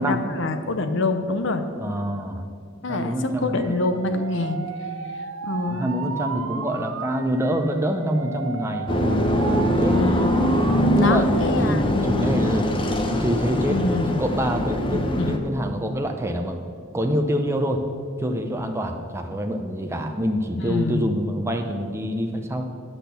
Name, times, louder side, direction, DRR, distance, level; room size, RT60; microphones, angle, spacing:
voice 1, 0.0-1.6 2.8-4.6 5.4-5.9 9.9-10.3 11.0-12.5 13.7-14.2 14.9-15.4 20.6-21.2, left 2 dB, 65° left, 8 dB, 0.8 m, -26 dB
voice 2, 1.8-2.4 2.9-3.7 5.6-10.0 10.9-11.3 11.6-12.7 13.0-13.8 14.2-16.6 16.9-17.8 18.2-22.7, equal, 15° right, 4 dB, 0.6 m, -26 dB
Alarm, 3.6-10.8 11.2-11.7, right 6 dB, 75° right, 0.5 m, -35 dB
sound 1, 8.9-15.4, equal, 25° left, 0.8 m, -22 dB
10.5 x 6.0 x 6.8 m, 2.3 s
head